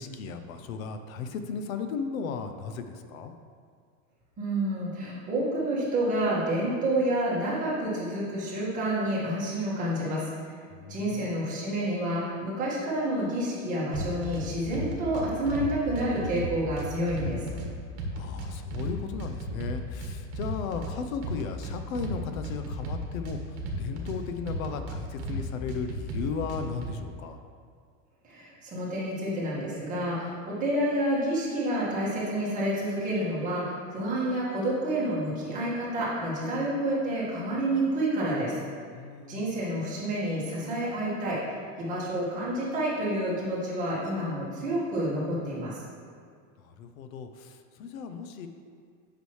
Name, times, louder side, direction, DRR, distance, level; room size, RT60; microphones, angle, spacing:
voice 1, 0.0-3.3 10.7-11.3 18.1-27.4 38.9-39.6 46.6-48.5, left 5 dB, 80° left, 8 dB, 0.7 m, -36 dB
voice 2, 4.4-10.5 10.9-17.4 28.2-38.6 39.3-45.8, right 1 dB, 20° right, -8 dB, 1.8 m, -29 dB
sound 1, 13.9-14.4 14.7-15.7 16.0-17.7 18.0-18.9 19.2-20.9 21.2-22.2 22.4-24.2 24.5-25.4 25.7-26.9, right 1 dB, 50° right, 1.4 m, -34 dB
8.3 x 6.1 x 3.2 m, 2.1 s
supercardioid pair, 175°, 40 cm